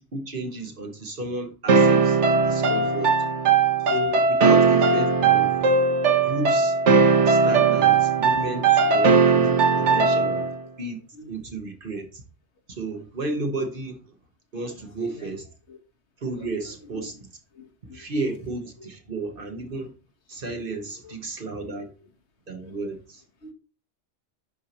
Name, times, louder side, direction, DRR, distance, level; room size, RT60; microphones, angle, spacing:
voice 1, 0.1-3.1 3.8-5.6 6.2-6.8 7.3-10.4 10.8-11.0 11.3-12.2 12.7-14.0 14.5-15.5 16.2-17.1 17.9-19.9 20.3-21.9 22.5-23.2, right 2 dB, 50° right, 1.3 m, -33 dB
sound 1, 1.7-10.6, right 4 dB, 75° right, 1.3 m, -19 dB
voice 2, 7.7-8.2 8.8-9.0 9.4-9.7 10.2-10.3 11.1-11.3 15.0-15.3 15.7-15.8 16.3-17.0 17.5-18.1 18.8-18.9 20.7-21.1 21.7-21.9 22.6-22.8 23.4-23.5, left 2 dB, 70° left, 1.6 m, -45 dB
11.0 x 4.6 x 2.9 m
omnidirectional pair, 1.2 m